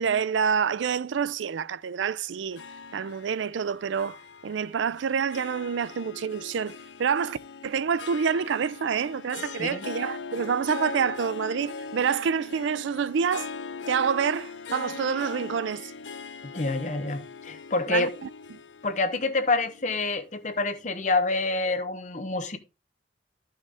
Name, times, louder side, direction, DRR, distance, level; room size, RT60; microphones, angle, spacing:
voice 1, 0.0-2.6 2.9-4.2 4.4-7.4 7.6-13.5 13.9-15.9 17.9-18.3, right 6 dB, 85° right, 0.4 m, -27 dB
Harp, 2.5-21.0, left 5 dB, 85° left, 0.7 m, -41 dB
voice 2, 16.4-18.1 18.8-22.6, left 3 dB, 40° left, 0.9 m, -27 dB
11.5 x 5.7 x 3.4 m
head